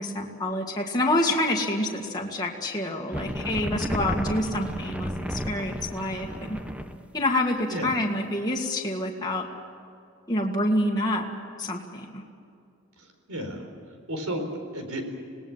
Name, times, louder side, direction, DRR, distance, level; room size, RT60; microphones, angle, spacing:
voice 1, 0.0-6.6 7.1-9.5 10.3-11.3 11.6-12.2, left 1 dB, 20° left, -1 dB, 1.8 m, -27 dB
sound 1, 3.1-7.1, equal, 5° right, 0.9 m, -32 dB
voice 2, 7.7-8.0 13.0-13.6 14.1-15.0, equal, 80° right, 5 dB, 4.3 m, -33 dB
26.5 x 19.0 x 7.3 m, 2.5 s
head